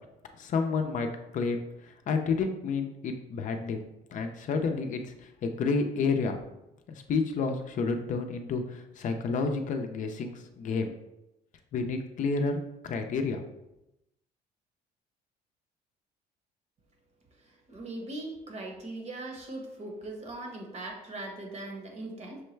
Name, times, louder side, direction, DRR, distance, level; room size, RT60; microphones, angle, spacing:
voice 1, 0.4-1.1 1.3-1.6 2.1-3.8 4.1-6.4 6.9-10.9 11.7-13.4, left 4 dB, 50° left, 5 dB, 0.5 m, -30 dB
voice 2, 17.4-22.4, right 2 dB, 40° right, 1 dB, 1.0 m, -40 dB
6.2 x 2.2 x 3.2 m, 0.90 s
cardioid pair, 110°, 17 cm